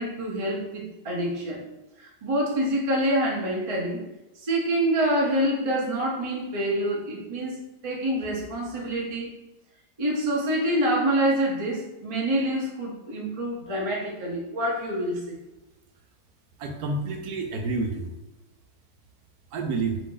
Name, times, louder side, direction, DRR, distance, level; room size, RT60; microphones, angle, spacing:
voice 1, 0.0-1.6 2.0-4.0 4.4-9.3 10.0-15.4, right 1 dB, 45° right, -3 dB, 0.4 m, -26 dB
voice 2, 16.6-18.1 19.5-20.0, right 3 dB, 70° right, 3 dB, 1.0 m, -29 dB
4.8 x 2.5 x 3.8 m, 0.99 s
omnidirectional pair, 1.9 m